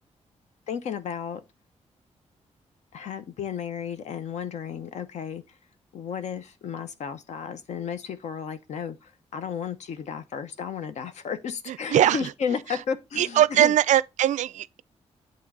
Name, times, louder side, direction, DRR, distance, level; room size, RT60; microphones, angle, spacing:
voice 1, 0.7-1.4 2.9-5.6 5.9-13.7, left 7 dB, 70° left, 0.9 m, -33 dB
voice 2, 11.7-12.3 12.7-12.8 13.2-14.8, right 12 dB, 85° right, 0.4 m, -21 dB
8.6 x 3.1 x 6.1 m
wide cardioid pair, 180°, 12 cm